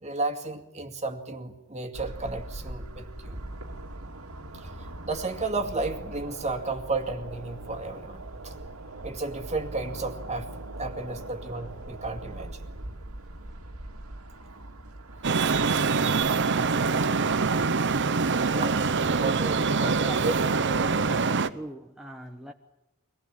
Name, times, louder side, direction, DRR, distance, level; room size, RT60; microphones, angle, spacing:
voice 1, 0.0-3.4 4.5-8.5 9.0-10.5 10.8-12.7 18.5-18.8 19.2-20.3, right 3 dB, 30° right, 5 dB, 2.2 m, -33 dB
sound 1, 1.9-21.2, right 1 dB, 75° right, 2.4 m, -42 dB
Traffic noise roadway noise, 15.2-21.5, right 4 dB, 55° right, 0.9 m, -24 dB
voice 2, 19.9-20.3 21.5-22.5, right 1 dB, ahead, 2 dB, 1.1 m, -40 dB
24.5 x 19.0 x 8.9 m, 0.95 s
head